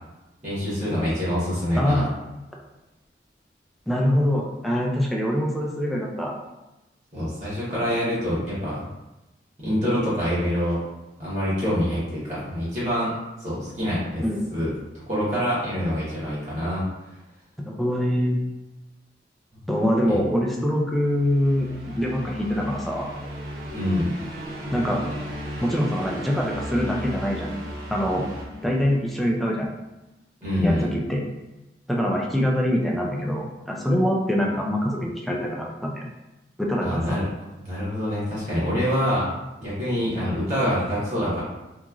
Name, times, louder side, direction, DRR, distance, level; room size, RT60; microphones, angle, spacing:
voice 1, 0.4-2.1 7.1-8.8 9.6-10.8 11.2-13.1 13.4-14.2 14.5-16.8 20.1-20.2 23.7-24.1 30.4-30.9 36.8-37.2 37.6-39.3 39.6-41.4, equal, 45° right, -10 dB, 1.1 m, -25 dB
voice 2, 1.7-2.1 3.9-6.3 14.2-14.4 17.6-18.4 19.7-23.1 24.7-25.0 25.6-27.5 27.9-28.3 28.6-29.7 30.6-31.2 31.9-36.1 36.6-37.2, equal, ahead, -2 dB, 0.3 m, -24 dB
sound 1, 21.0-29.3, equal, 60° right, 0.7 m, -36 dB
2.9 x 2.4 x 2.4 m, 1.0 s
head